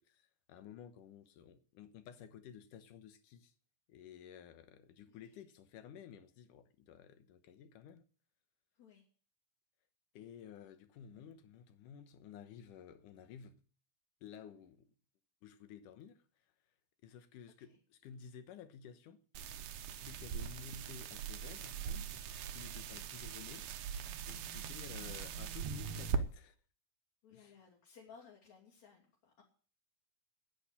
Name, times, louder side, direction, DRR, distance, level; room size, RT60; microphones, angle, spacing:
voice 1, 0.0-3.5 3.9-8.0 10.1-13.6 14.2-15.0 15.4-16.2 17.0-19.2 19.5-19.6 20.0-22.1 22.5-23.8 24.3-26.6 27.3-27.5, left 8 dB, 90° left, 2.7 m, -53 dB
voice 2, 5.0-5.4 8.7-9.1 17.7-17.8 24.3-24.7 27.2-29.4, left 6 dB, 65° left, 4.0 m, -60 dB
sound 1, 19.4-26.2, right 7 dB, 90° right, 2.6 m, -41 dB
10.5 x 8.6 x 9.9 m
omnidirectional pair, 3.6 m